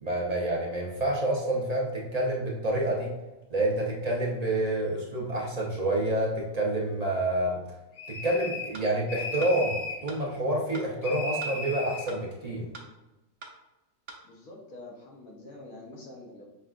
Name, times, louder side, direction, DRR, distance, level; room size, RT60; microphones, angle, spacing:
voice 1, 0.0-3.1 3.5-7.6 8.1-12.7, right 1 dB, 35° right, -2 dB, 0.7 m, -28 dB
sound 1, 8.0-8.8 9.1-10.0 11.0-12.1, left 2 dB, 60° left, 1.3 m, -35 dB
sound 2, 8.7-8.9 9.4-9.5 10.1-10.2 10.7-10.9 11.4-11.5 12.1-12.2 12.7-12.9 13.4-13.5 14.1-14.2, right 3 dB, 60° right, 1.0 m, -43 dB
voice 2, 14.2-16.4, left 2 dB, 75° left, -1 dB, 1.5 m, -46 dB
5.5 x 3.5 x 2.5 m, 1.0 s
omnidirectional pair, 1.5 m